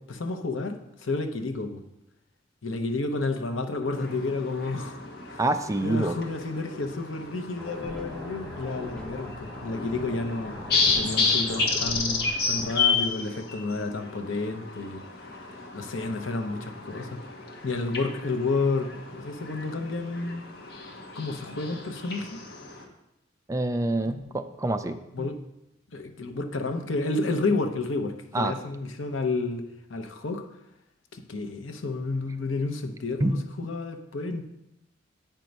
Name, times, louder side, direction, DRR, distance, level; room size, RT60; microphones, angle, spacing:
voice 1, 0.1-1.8 2.6-5.0 5.3-5.4 5.8-10.6 10.9-15.0 15.7-17.2 17.6-20.4 21.1-22.4 24.1-24.4 25.1-25.4 25.9-29.6 29.9-30.5 31.1-34.4, left 3 dB, 85° left, 6 dB, 0.8 m, -31 dB
sound 1, 3.9-22.8, left 4 dB, 55° left, 1.3 m, -32 dB
voice 2, 5.4-6.2 23.5-25.3 28.3-28.6 33.2-33.3, right 2 dB, 15° right, 9 dB, 0.4 m, -26 dB
sound 2, 7.6-12.7, left 1 dB, 5° left, 1.0 m, -40 dB
9.0 x 4.6 x 5.3 m, 0.88 s
head